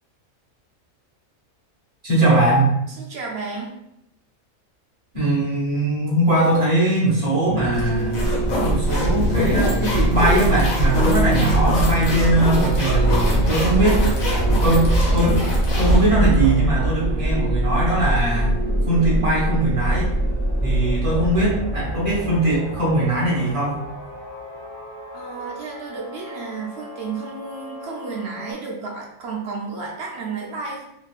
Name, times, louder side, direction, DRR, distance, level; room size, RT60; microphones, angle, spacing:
voice 1, 2.0-2.7 5.1-8.2 8.6-14.0 14.6-15.4 15.8-18.5 18.8-20.1 20.6-23.8, right 1 dB, 25° right, -6 dB, 1.0 m, -20 dB
voice 2, 3.0-3.8 25.1-30.8, right 4 dB, 60° right, -2 dB, 0.8 m, -32 dB
sound 1, 7.5-20.7, right 2 dB, 85° right, 1.0 m, -29 dB
sound 2, 7.7-16.5, right 1 dB, 85° left, 1.3 m, -21 dB
sound 3, 12.7-28.5, right 1 dB, 5° left, 1.0 m, -26 dB
2.9 x 2.7 x 2.4 m, 0.80 s
omnidirectional pair, 1.4 m